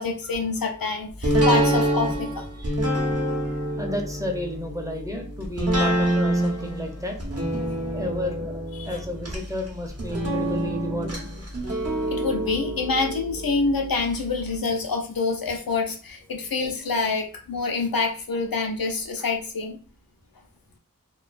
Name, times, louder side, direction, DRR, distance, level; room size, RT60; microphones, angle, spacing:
voice 1, 0.0-2.5 8.8-8.9 12.1-19.8, left 4 dB, 75° left, 3 dB, 0.6 m, -26 dB
sound 1, 1.2-14.2 14.5-14.6, right 1 dB, 45° right, 0.7 m, -26 dB
voice 2, 2.5-3.2 3.4-7.2 7.9-11.4 19.2-19.3, left 1 dB, 10° right, 2 dB, 0.6 m, -33 dB
2.3 x 2.2 x 2.4 m, 0.37 s
wide cardioid pair, 45°, 35 cm